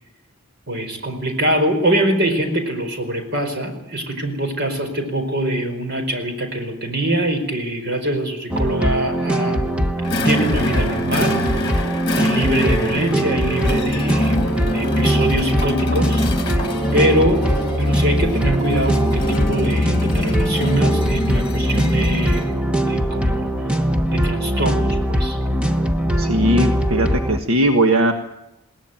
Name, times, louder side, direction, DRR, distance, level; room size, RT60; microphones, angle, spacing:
voice 1, 0.7-9.6 10.2-16.6 16.9-17.5 17.8-22.5 22.8-23.5 24.1-25.4, right 1 dB, 50° right, 5 dB, 4.8 m, -23 dB
sound 1, 8.5-27.4, equal, 5° right, 1.1 m, -21 dB
sound 2, 10.0-22.6, left 2 dB, 20° left, 2.5 m, -26 dB
voice 2, 26.2-28.1, right 1 dB, 75° right, 6 dB, 1.4 m, -18 dB
21.0 x 18.0 x 9.1 m, 0.88 s
head